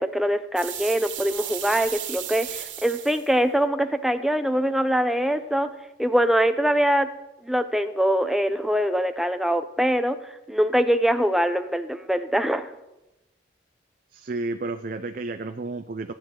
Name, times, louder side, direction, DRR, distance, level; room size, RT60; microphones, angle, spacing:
voice 1, 0.0-5.7 6.0-7.1 7.4-10.2 10.5-12.7, equal, ahead, 8 dB, 0.5 m, -23 dB
sound 1, 0.6-3.3, right 10 dB, 85° right, 1.6 m, -34 dB
voice 2, 14.1-16.1, right 3 dB, 45° right, 8 dB, 0.5 m, -31 dB
15.5 x 8.9 x 3.8 m, 0.95 s
head